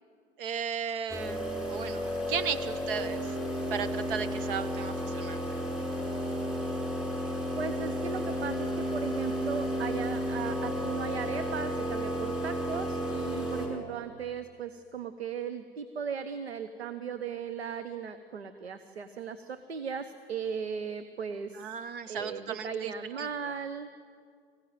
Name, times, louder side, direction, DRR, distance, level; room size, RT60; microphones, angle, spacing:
voice 1, 0.4-3.4 3.7-5.4 21.5-23.5, right 7 dB, 60° right, 12 dB, 1.2 m, -36 dB
sound 1, 1.1-13.7, equal, ahead, 5.3 m, -32 dB
voice 2, 7.6-21.7 22.1-23.9, right 6 dB, 80° right, 9 dB, 1.1 m, -37 dB
25.5 x 15.5 x 9.2 m, 2.1 s
figure-of-eight pair, 85°, 31 cm